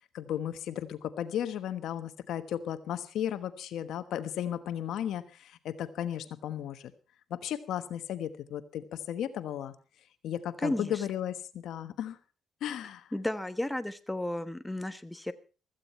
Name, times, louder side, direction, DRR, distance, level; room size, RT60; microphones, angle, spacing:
voice 1, 0.1-6.9 7.3-9.7 10.2-12.2 12.6-13.1, left 10 dB, 80° left, 11 dB, 1.2 m, -35 dB
voice 2, 10.6-11.0 13.1-15.3, left 1 dB, 10° left, 10 dB, 1.2 m, -33 dB
15.5 x 14.5 x 4.4 m, 0.35 s
cardioid pair, 90°, 0 cm